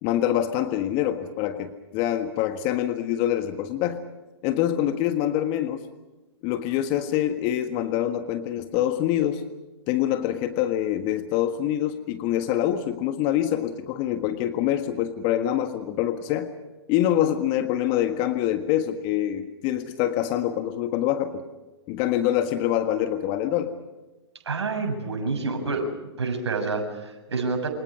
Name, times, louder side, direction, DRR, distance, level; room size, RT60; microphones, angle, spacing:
voice 1, 0.0-4.0 4.4-5.8 6.4-9.4 9.9-16.5 16.9-21.4 21.9-23.8, left 11 dB, 35° left, 8 dB, 1.6 m, -25 dB
voice 2, 24.5-25.9 26.2-27.7, right 3 dB, 70° right, 3 dB, 7.1 m, -28 dB
28.5 x 25.5 x 5.0 m, 1.1 s
figure-of-eight pair, 115°, 14 cm